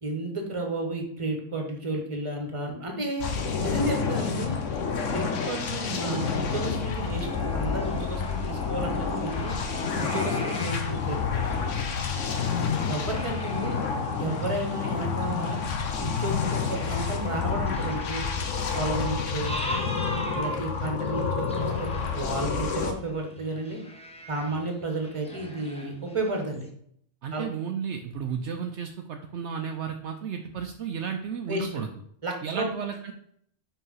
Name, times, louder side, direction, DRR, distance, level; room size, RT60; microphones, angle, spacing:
voice 1, 0.0-3.3 3.6-4.6 5.1-9.5 9.9-11.4 12.9-13.8 14.2-15.6 16.0-18.3 18.7-19.5 20.3-23.8 24.3-26.7 27.3-27.5 31.5-31.8 32.2-32.7, right 2 dB, 25° right, 2 dB, 1.4 m, -32 dB
sound 1, 3.2-22.9, left 5 dB, 85° left, 1.2 m, -29 dB
sound 2, 7.1-12.0 12.5-26.7, left 1 dB, 5° left, 0.8 m, -42 dB
voice 2, 27.2-31.9 32.4-33.1, right 7 dB, 70° right, 4 dB, 0.9 m, -33 dB
5.5 x 4.6 x 5.5 m, 0.66 s
omnidirectional pair, 1.3 m